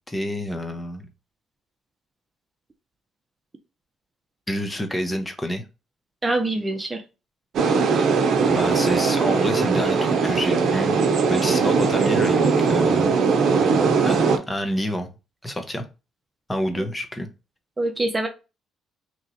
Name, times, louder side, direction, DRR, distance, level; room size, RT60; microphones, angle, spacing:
voice 1, 0.1-1.1 4.5-5.6 8.5-11.0 11.3-13.1 14.0-15.1 15.4-15.8 16.5-17.3, equal, 15° left, 0.9 m, -28 dB
voice 2, 6.2-7.0 7.9-8.1 11.7-11.8 16.8-16.9 17.8-18.3, right 2 dB, 25° right, 0.7 m, -25 dB
sound 1, 7.5-14.4, right 5 dB, 65° right, 0.7 m, -20 dB
3.0 x 2.4 x 4.1 m
supercardioid pair, 70°, 0 cm